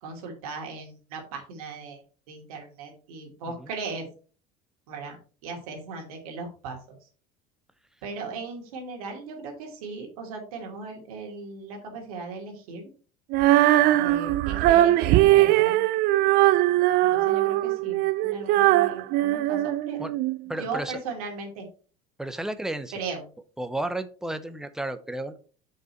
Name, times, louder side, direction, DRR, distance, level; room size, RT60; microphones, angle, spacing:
voice 1, 0.0-2.0 2.3-4.1 4.9-5.2 5.4-6.8 8.0-12.8 13.9-15.8 17.1-20.1 20.6-21.7 22.9-23.2, right 4 dB, 90° right, 2 dB, 2.7 m, -37 dB
Female singing, 13.3-20.4, right 15 dB, 60° right, 0.4 m, -20 dB
voice 2, 20.5-21.0 22.2-22.9 23.6-25.4, right 1 dB, 5° right, 10 dB, 0.8 m, -32 dB
6.6 x 5.4 x 4.4 m, 0.39 s
supercardioid pair, 105°, 18 cm